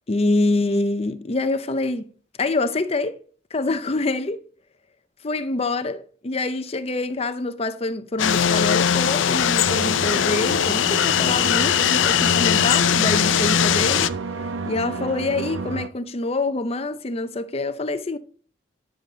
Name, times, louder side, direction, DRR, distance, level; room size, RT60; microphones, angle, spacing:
voice 1, 0.1-2.1 2.4-3.2 3.5-4.4 5.2-14.1 14.7-18.2, left 2 dB, 30° left, 0.5 m, -25 dB
sound 1, 8.2-14.1, left 8 dB, 85° left, 0.5 m, -20 dB
sound 2, 9.7-15.9, right 4 dB, 90° right, 0.6 m, -31 dB
9.8 x 7.2 x 3.7 m
head